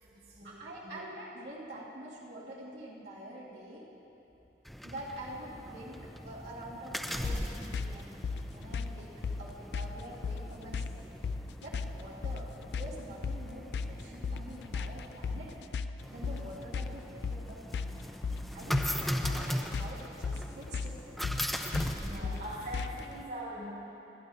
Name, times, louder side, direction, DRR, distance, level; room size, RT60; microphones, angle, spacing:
voice 1, 0.4-3.8 4.8-8.2 8.5-11.1 11.6-15.6 16.1-18.1 18.5-21.2, right 1 dB, 85° right, -7 dB, 2.2 m, -46 dB
sound 1, 4.7-23.2, equal, ahead, 0.5 m, -40 dB
sound 2, 7.2-23.1, left 5 dB, 75° left, 0.4 m, -37 dB
voice 2, 22.0-23.8, equal, 60° right, -6 dB, 2.1 m, -41 dB
24.0 x 9.9 x 2.8 m, 2.9 s
head